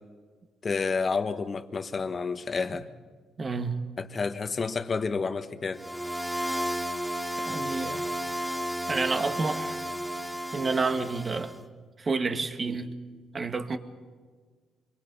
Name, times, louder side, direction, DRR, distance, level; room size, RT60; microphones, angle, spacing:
voice 1, 0.6-2.9 4.0-5.8, left 4 dB, 40° left, 1.4 m, -30 dB
voice 2, 3.4-3.8 7.4-8.1 8.9-9.8 10.5-11.5 12.0-12.9 13.3-13.8, right 4 dB, 35° right, 1.8 m, -29 dB
sound 1, 5.8-11.6, equal, 10° right, 2.0 m, -33 dB
28.0 x 22.5 x 5.5 m
cardioid pair, 90°, 0 cm